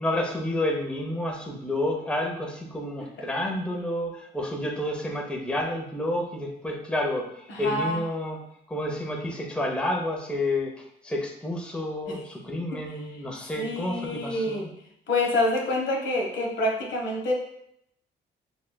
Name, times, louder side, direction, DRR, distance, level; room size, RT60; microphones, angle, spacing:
voice 1, 0.0-8.4 8.7-14.7, left 1 dB, 5° left, 0 dB, 0.7 m, -30 dB
voice 2, 7.5-8.0 12.1-12.2 12.7-12.8 13.6-14.7 15.1-17.3, left 2 dB, 70° left, -1 dB, 1.1 m, -27 dB
6.8 x 2.4 x 2.2 m, 0.73 s
cardioid pair, 90°, 20 cm